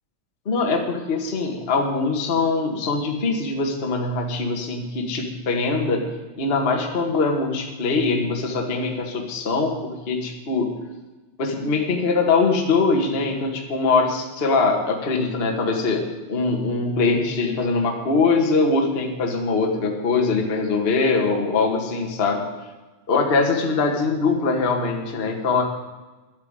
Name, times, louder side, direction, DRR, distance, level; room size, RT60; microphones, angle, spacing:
voice 1, 0.4-6.0 6.4-10.7 11.4-16.0 16.3-22.4 23.1-25.6, left 4 dB, 25° left, 2 dB, 1.3 m, -22 dB
11.5 x 8.7 x 9.1 m, 1.2 s
omnidirectional pair, 4.0 m